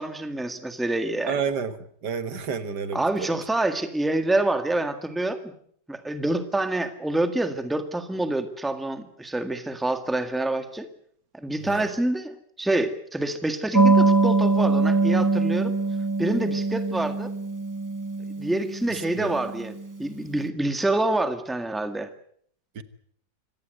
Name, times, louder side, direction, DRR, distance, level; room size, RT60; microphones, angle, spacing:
voice 1, 0.0-1.4 2.9-5.5 5.9-10.9 11.3-15.7 16.2-17.3 18.4-22.1, right 2 dB, ahead, 8 dB, 1.7 m, -27 dB
voice 2, 1.3-1.8 2.0-3.0 3.3-3.4 11.6-11.9 19.2-19.3 22.8-22.9, right 6 dB, 75° right, 11 dB, 2.0 m, -29 dB
sound 1, 13.7-19.9, right 3 dB, 20° right, 0.4 m, -23 dB
25.0 x 18.0 x 8.0 m, 0.65 s
omnidirectional pair, 1.8 m